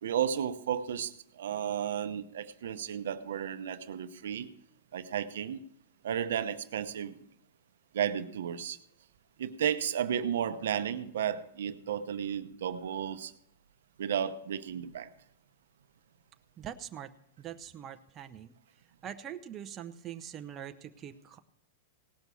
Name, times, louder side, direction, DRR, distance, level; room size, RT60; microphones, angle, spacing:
voice 1, 0.0-4.5 4.9-5.6 6.0-7.2 7.9-8.8 9.4-13.3 14.0-15.1, right 9 dB, 80° right, 9 dB, 0.8 m, -33 dB
voice 2, 16.6-17.1 17.4-18.5 19.0-21.4, right 10 dB, 25° right, 6 dB, 0.7 m, -43 dB
17.5 x 6.1 x 7.0 m, 0.74 s
hypercardioid pair, 140°, 0 cm